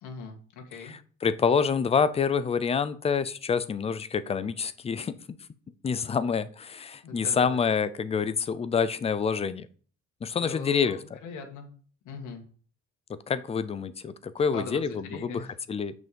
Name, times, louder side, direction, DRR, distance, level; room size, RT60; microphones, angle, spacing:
voice 1, 0.0-0.9 7.0-7.6 10.3-11.7 12.1-12.4 14.5-15.6, left 4 dB, 80° left, 2 dB, 2.1 m, -40 dB
voice 2, 0.8-5.2 5.8-9.7 10.2-11.0 13.3-15.4 15.7-15.9, left 6 dB, 20° left, 14 dB, 0.4 m, -27 dB
6.1 x 5.6 x 7.0 m, 0.43 s
cardioid pair, 170°, 30 cm